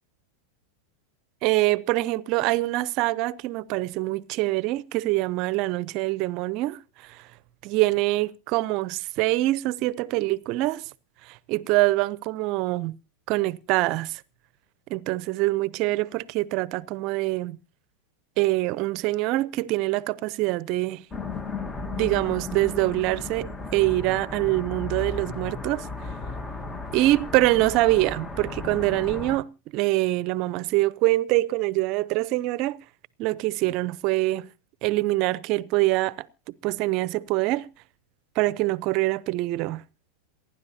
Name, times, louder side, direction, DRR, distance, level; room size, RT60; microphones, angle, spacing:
voice 1, 1.4-6.8 7.1-7.2 7.6-10.8 11.3-13.0 13.3-14.2 14.9-17.6 18.4-21.0 22.0-25.9 26.9-29.5 29.7-32.8 33.2-34.5 34.8-36.3 36.6-37.7 38.4-39.8, right 19 dB, 50° right, 0.7 m, -24 dB
sound 1, 21.1-29.4, left 3 dB, 20° left, 1.5 m, -35 dB
27.5 x 10.5 x 2.8 m
hypercardioid pair, 100°, 0 cm